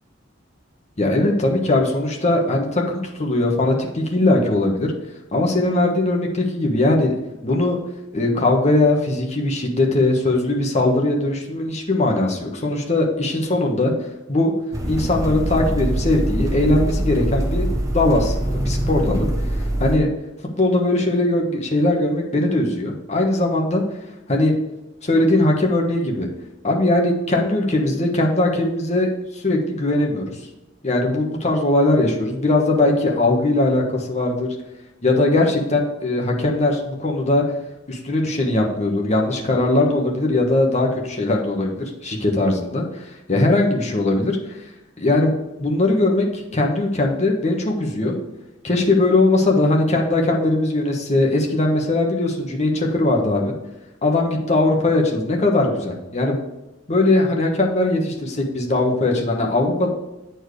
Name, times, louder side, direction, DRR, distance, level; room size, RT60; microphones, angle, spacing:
voice 1, 1.0-4.9 5.3-7.1 7.4-7.8 8.1-13.9 14.3-14.5 14.9-17.7 17.9-19.3 19.8-20.1 20.6-23.8 24.3-24.5 25.0-26.3 26.6-29.1 29.4-30.3 30.8-34.5 35.0-37.4 37.9-42.8 43.3-44.4 45.0-45.3 45.6-48.1 48.6-53.5 54.0-56.4 56.9-59.9, left 2 dB, 40° left, 0 dB, 1.3 m, -20 dB
sound 1, 14.7-20.0, right 1 dB, 20° right, 1.2 m, -23 dB
8.6 x 4.6 x 4.8 m, 1.0 s
head